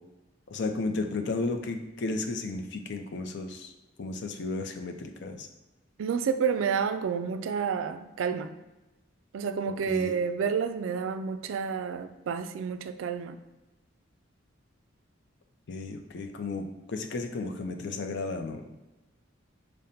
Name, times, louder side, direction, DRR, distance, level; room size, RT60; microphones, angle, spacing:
voice 1, 0.5-3.7 4.0-5.5 9.9-10.1 15.7-18.6, left 3 dB, 60° left, 0.5 m, -33 dB
voice 2, 6.0-8.5 9.3-13.4, right 6 dB, 75° right, 0.3 m, -30 dB
5.1 x 2.1 x 4.1 m
head